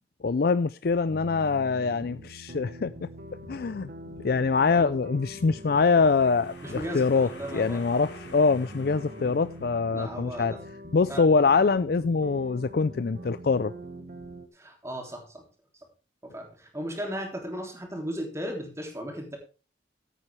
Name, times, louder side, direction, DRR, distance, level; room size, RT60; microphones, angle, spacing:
voice 1, 0.2-3.1 3.5-3.9 4.2-10.6 10.9-13.7, left 4 dB, 55° left, 0.4 m, -24 dB
sound 1, 1.1-14.5, right 1 dB, 50° right, 1.3 m, -44 dB
sound 2, 5.4-10.2, left 2 dB, 75° left, 3.0 m, -49 dB
voice 2, 6.6-7.8 9.9-10.6 11.1-11.2 14.5-15.4 16.2-19.4, equal, 15° right, 3.3 m, -36 dB
14.5 x 8.9 x 3.3 m
head